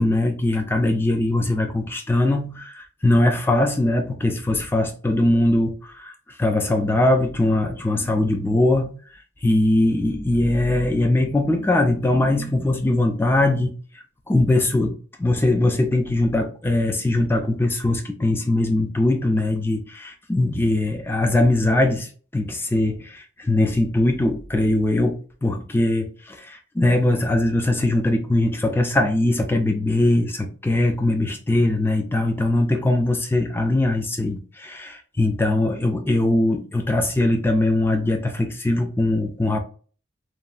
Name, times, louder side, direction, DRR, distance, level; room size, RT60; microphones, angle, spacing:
voice 1, 0.0-6.1 6.4-8.9 9.4-13.7 14.3-14.9 15.2-39.6, left 2 dB, 10° left, 0.3 m, -21 dB
3.1 x 2.2 x 2.4 m
head